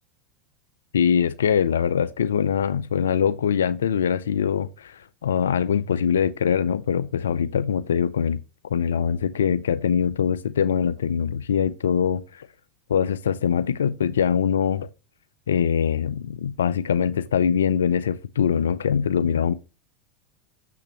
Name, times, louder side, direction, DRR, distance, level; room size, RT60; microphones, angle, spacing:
voice 1, 0.9-12.5 12.9-14.9 15.5-19.5, left 7 dB, 90° left, 0.4 m, -23 dB
7.0 x 5.8 x 2.8 m
hypercardioid pair, 95°, 0 cm